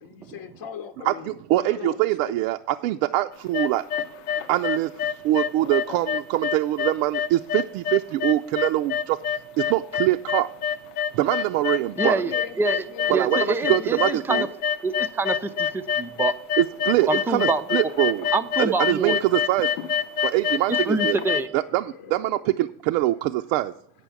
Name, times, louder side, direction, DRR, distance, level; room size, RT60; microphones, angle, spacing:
voice 1, 0.0-2.0 2.2-2.3 12.1-14.5 22.0-22.3, left 9 dB, 50° left, 5 dB, 0.8 m, -38 dB
voice 2, 1.0-3.9 4.5-9.2 9.6-10.5 11.1-12.2 13.1-14.5 16.6-18.3 18.6-19.8 20.2-21.2 21.5-23.7, right 15 dB, 70° right, 6 dB, 0.5 m, -24 dB
sound 1, 3.3-21.4, left 8 dB, 90° left, 0.8 m, -26 dB
voice 3, 12.0-12.3 12.6-14.5 14.8-16.3 17.0-17.9 18.3-19.2 20.7-21.5, right 3 dB, 5° right, 9 dB, 0.3 m, -26 dB
9.1 x 5.4 x 7.0 m, 0.67 s
supercardioid pair, 90°, 44 cm